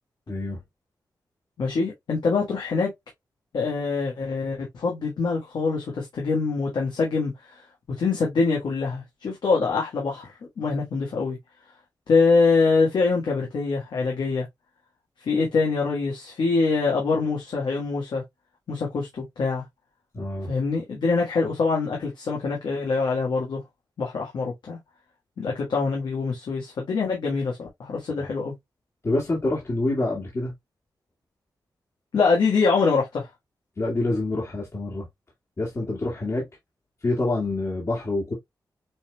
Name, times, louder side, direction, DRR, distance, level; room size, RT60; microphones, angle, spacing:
voice 1, 0.3-0.6 20.1-20.5 29.0-30.5 33.8-35.1 35.6-36.5 37.0-38.3, left 2 dB, 40° left, 1.9 m, -26 dB
voice 2, 1.6-2.9 3.5-7.6 8.0-10.3 10.6-11.4 12.1-14.4 15.2-18.2 18.7-19.6 20.5-23.6 24.0-24.8 25.4-28.5 32.1-33.3, left 4 dB, 85° left, 1.5 m, -24 dB
6.1 x 3.5 x 2.3 m
cardioid pair, 80°, 7 cm